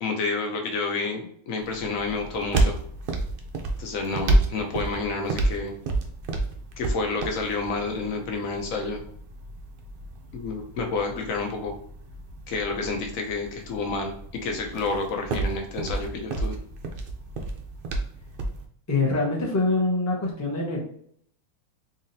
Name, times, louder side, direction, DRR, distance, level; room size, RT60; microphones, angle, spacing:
voice 1, 0.0-2.8 3.8-5.7 6.8-9.0 10.3-11.7 12.5-16.5, left 3 dB, 65° left, 3 dB, 1.1 m, -29 dB
sound 1, 1.6-18.6, right 2 dB, 75° right, 0.4 m, -30 dB
voice 2, 18.9-20.8, left 2 dB, 20° left, -3 dB, 0.5 m, -24 dB
3.9 x 2.9 x 2.7 m, 0.64 s
omnidirectional pair, 1.6 m